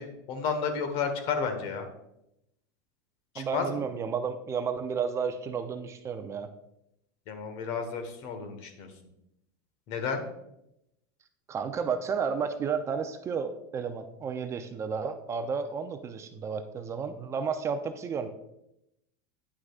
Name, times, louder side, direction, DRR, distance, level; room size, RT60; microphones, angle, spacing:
voice 1, 0.0-1.9 3.3-3.8 7.3-8.9 9.9-10.2, left 5 dB, 55° left, 7 dB, 1.3 m, -32 dB
voice 2, 3.4-6.5 11.5-18.3, right 6 dB, 25° right, 8 dB, 0.5 m, -32 dB
9.7 x 6.1 x 2.4 m, 0.83 s
supercardioid pair, 130°, 12 cm